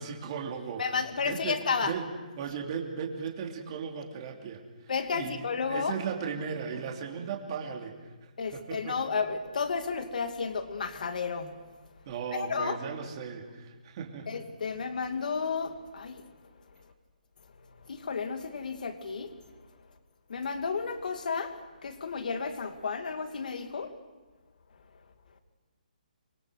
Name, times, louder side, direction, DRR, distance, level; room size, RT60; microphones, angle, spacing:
voice 1, 0.0-7.9 8.2-9.0 12.0-14.4, right 6 dB, 35° right, 1 dB, 3.0 m, -37 dB
voice 2, 0.8-1.9 4.9-5.9 8.4-11.5 12.3-12.8 14.3-16.2 17.9-19.3 20.3-21.5 21.8-23.9, left 5 dB, 70° left, 7 dB, 2.5 m, -32 dB
26.0 x 21.5 x 6.5 m, 1.2 s
hypercardioid pair, 160°, 5 cm